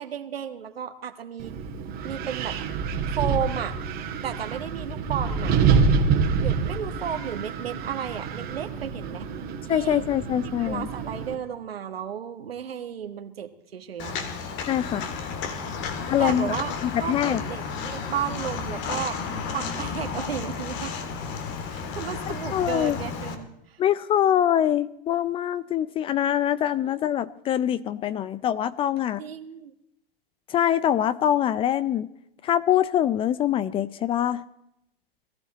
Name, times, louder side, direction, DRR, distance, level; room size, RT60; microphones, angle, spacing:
voice 1, 0.0-1.6 2.0-2.6 3.2-3.8 4.2-5.6 6.4-9.3 9.6-10.0 10.6-14.2 16.0-16.7 17.0-19.2 19.5-20.9 21.7-23.8 26.8-26.9 29.2-29.7, right 8 dB, 85° right, 7 dB, 1.5 m, -33 dB
Wind, 1.4-11.3, right 5 dB, 30° right, 2.1 m, -27 dB
voice 2, 9.7-10.9 14.7-15.0 16.1-16.5 16.8-17.4 22.5-23.0 23.8-29.2 30.5-32.1 32.4-34.4, left 10 dB, 20° left, 18 dB, 0.5 m, -24 dB
Walk footsteps, 14.0-23.3, left 5 dB, 40° left, 2.4 m, -32 dB
20.5 x 14.0 x 4.2 m, 0.80 s
hypercardioid pair, 125°, 29 cm